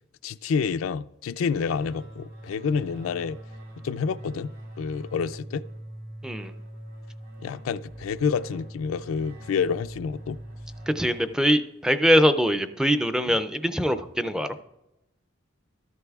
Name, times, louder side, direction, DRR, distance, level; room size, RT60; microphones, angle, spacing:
voice 1, 0.2-3.4 3.8-5.6 7.4-10.4 13.3-13.4, left 6 dB, 85° left, 0.3 m, -28 dB
sound 1, 1.5-11.7, right 1 dB, 80° right, 3.0 m, -42 dB
voice 2, 10.9-14.6, equal, 5° right, 0.3 m, -23 dB
13.5 x 11.0 x 2.3 m
head